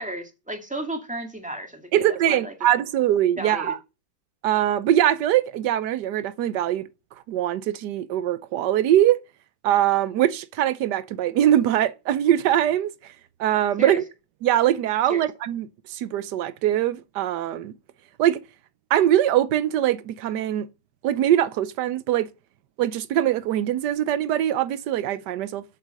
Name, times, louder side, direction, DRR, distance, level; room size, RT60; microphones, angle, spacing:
voice 1, 0.0-1.9 2.3-2.5 3.4-3.7 13.8-14.0 15.1-15.2, right 1 dB, 5° right, 2.0 m, -33 dB
voice 2, 1.9-3.8 4.4-6.9 7.3-9.2 9.6-13.1 13.4-14.0 14.4-17.7 18.2-18.4 18.9-20.7 21.0-22.3 22.8-25.6, right 12 dB, 65° right, 1.2 m, -22 dB
8.4 x 7.0 x 6.4 m
omnidirectional pair, 2.2 m